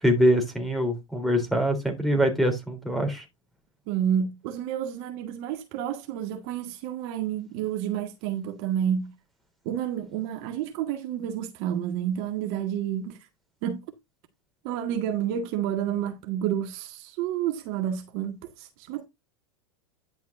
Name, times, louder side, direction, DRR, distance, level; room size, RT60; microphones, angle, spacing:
voice 1, 0.0-3.2, equal, ahead, 3.6 m, -24 dB
voice 2, 3.9-9.1 9.7-13.2 13.6-13.8 14.6-19.0, right 9 dB, 55° right, 1.8 m, -30 dB
10.5 x 7.6 x 2.6 m
hypercardioid pair, 100°, 17 cm